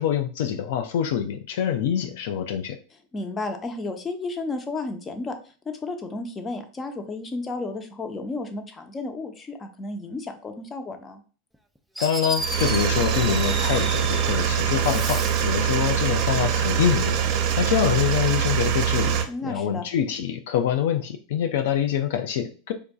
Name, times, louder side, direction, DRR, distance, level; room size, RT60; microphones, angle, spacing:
voice 1, 0.0-2.8 12.0-19.2 19.4-22.7, left 9 dB, 75° left, 8 dB, 0.3 m, -25 dB
voice 2, 3.1-5.3 5.6-11.2 19.3-19.8, left 3 dB, 25° left, 6 dB, 0.7 m, -32 dB
Fireworks, 11.5-11.6 11.9-14.4 14.7-15.6, right 1 dB, ahead, 0.4 m, -33 dB
sound 1, 12.4-19.2, right 8 dB, 55° right, 0.7 m, -23 dB
4.6 x 2.5 x 2.3 m, 0.37 s
hypercardioid pair, 100°, 0 cm